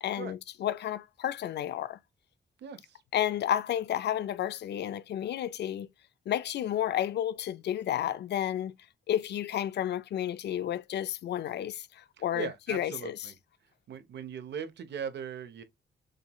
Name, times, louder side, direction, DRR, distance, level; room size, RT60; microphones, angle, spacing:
voice 1, 0.0-2.0 3.1-5.9 6.3-8.7 9.1-13.3, left 11 dB, 70° left, 0.5 m, -31 dB
voice 2, 2.6-3.0 12.3-13.3 13.9-15.6, right 7 dB, 75° right, 1.0 m, -39 dB
6.6 x 3.1 x 2.3 m
wide cardioid pair, 180°, 18 cm